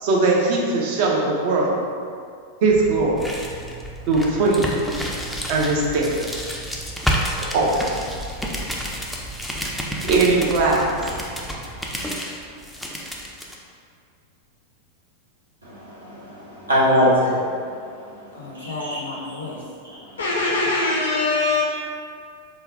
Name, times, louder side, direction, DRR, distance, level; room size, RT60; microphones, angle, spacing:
voice 1, 0.0-1.8 2.6-3.3 4.1-4.7 5.5-6.1 7.4-7.8 10.0-11.0, right 3 dB, 50° right, -2 dB, 0.5 m, -20 dB
sound 1, 2.7-13.6, equal, ahead, 0.3 m, -30 dB
voice 2, 15.6-17.4 18.5-19.2 19.8-20.0 20.4-20.5, equal, 75° right, -8 dB, 0.9 m, -22 dB
voice 3, 18.3-19.6 20.2-21.6, left 3 dB, 70° left, -5 dB, 0.4 m, -24 dB
3.7 x 2.1 x 2.6 m, 2.3 s
figure-of-eight pair, 90°, 0 cm